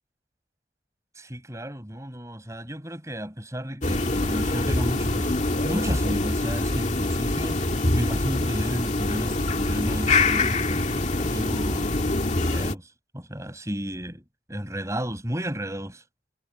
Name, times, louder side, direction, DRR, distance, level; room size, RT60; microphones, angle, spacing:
voice 1, 1.2-11.9 12.5-14.2 14.5-16.0, equal, 15° right, 7.6 m, -33 dB
sound 1, 3.8-12.8, left 2 dB, 40° left, 2.2 m, -25 dB
head